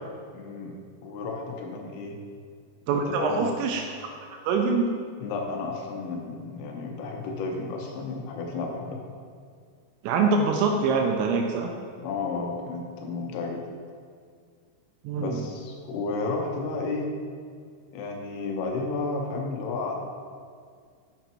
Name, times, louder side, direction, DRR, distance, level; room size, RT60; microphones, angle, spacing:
voice 1, 0.3-2.2 2.9-3.5 5.2-9.0 12.0-13.7 15.2-17.1 17.9-20.1, left 3 dB, 80° left, 1 dB, 3.0 m, -32 dB
voice 2, 2.9-3.8 4.2-4.9 10.0-11.7 15.0-15.4, right 4 dB, 85° right, 2 dB, 2.8 m, -24 dB
8.0 x 5.1 x 4.4 m, 2.1 s
omnidirectional pair, 5.8 m